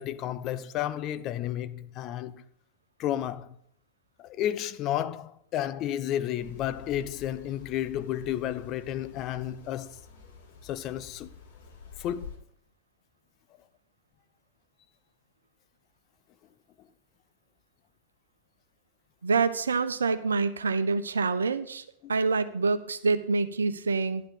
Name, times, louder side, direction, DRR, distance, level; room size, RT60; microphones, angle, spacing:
voice 1, 0.0-2.4 3.0-3.6 4.2-10.0 10.6-11.3 12.0-12.3 22.0-22.1, left 11 dB, 35° left, 0.8 m, -32 dB
sound 1, 6.4-12.4, left 5 dB, 60° left, 4.7 m, -48 dB
voice 2, 19.2-24.2, right 4 dB, 75° right, 0.9 m, -26 dB
11.5 x 11.5 x 4.0 m
figure-of-eight pair, 90°, 0 cm